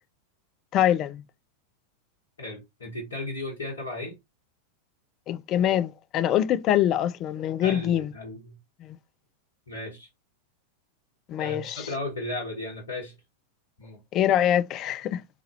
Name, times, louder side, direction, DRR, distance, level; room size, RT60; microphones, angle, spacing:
voice 1, 0.7-1.2 5.3-8.1 8.8-9.0 11.3-11.9 14.1-15.2, left 11 dB, 35° left, 0.3 m, -24 dB
voice 2, 2.4-4.1 7.6-8.6 9.7-10.1 11.4-13.1 13.8-14.0, left 2 dB, 70° left, 1.2 m, -35 dB
3.8 x 2.8 x 2.7 m
figure-of-eight pair, 90°, 0 cm